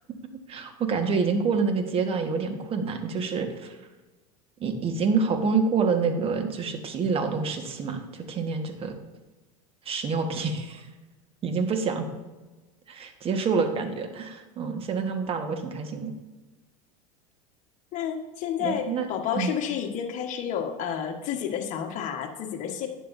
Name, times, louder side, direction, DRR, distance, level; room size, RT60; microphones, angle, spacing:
voice 1, 0.5-3.8 4.6-8.9 9.8-10.9 11.4-12.1 12.9-16.1 18.6-19.1 19.3-19.6, right 5 dB, 35° right, 5 dB, 1.5 m, -27 dB
voice 2, 17.9-22.9, left 8 dB, 50° left, 4 dB, 1.4 m, -30 dB
11.5 x 9.2 x 2.7 m, 1.2 s
hypercardioid pair, 100°, 17 cm